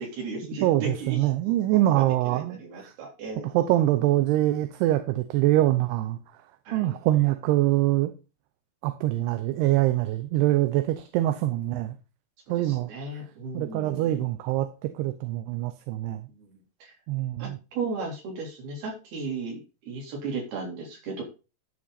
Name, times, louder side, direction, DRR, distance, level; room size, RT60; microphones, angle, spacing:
voice 1, 0.0-1.2 1.5-1.6 2.0-3.5 6.7-7.0 12.7-14.2 16.3-16.5 16.8-16.9 17.4-17.5 17.7-19.6 19.9-21.2, right 4 dB, 70° right, -1 dB, 5.5 m, -35 dB
voice 2, 0.6-2.9 3.4-6.2 6.7-8.1 8.8-12.0 12.5-12.9 13.5-16.3 17.1-17.6, right 15 dB, 85° right, 9 dB, 2.8 m, -24 dB
13.0 x 6.3 x 4.1 m, 0.31 s
omnidirectional pair, 4.6 m